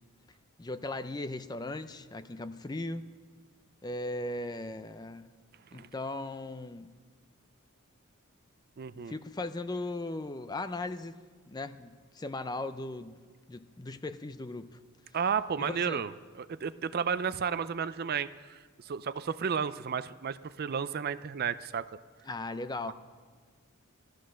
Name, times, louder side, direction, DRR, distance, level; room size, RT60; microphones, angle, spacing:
voice 1, 0.6-3.1 3.8-5.3 5.7-6.9 9.1-11.2 11.5-13.2 13.5-14.8 15.6-16.0 22.3-22.9, left 2 dB, 20° left, 11 dB, 0.5 m, -38 dB
voice 2, 8.8-9.1 15.1-16.1 16.4-21.9 22.9-23.0, right 6 dB, 45° right, 14 dB, 0.4 m, -32 dB
15.5 x 13.0 x 6.3 m, 1.5 s
head